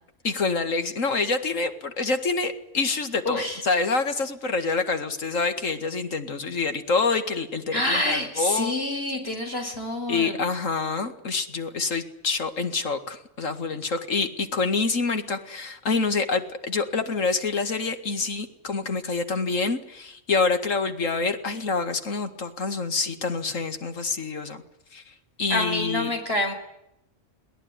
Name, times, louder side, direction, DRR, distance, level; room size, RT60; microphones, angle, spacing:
voice 1, 0.2-8.7 10.1-24.6 24.9-25.0 25.4-26.1, left 4 dB, 85° left, 8 dB, 2.3 m, -27 dB
voice 2, 3.3-3.6 7.7-10.5 25.5-26.5, left 1 dB, 50° left, 4 dB, 5.2 m, -27 dB
22.5 x 18.0 x 9.7 m, 0.82 s
omnidirectional pair, 1.3 m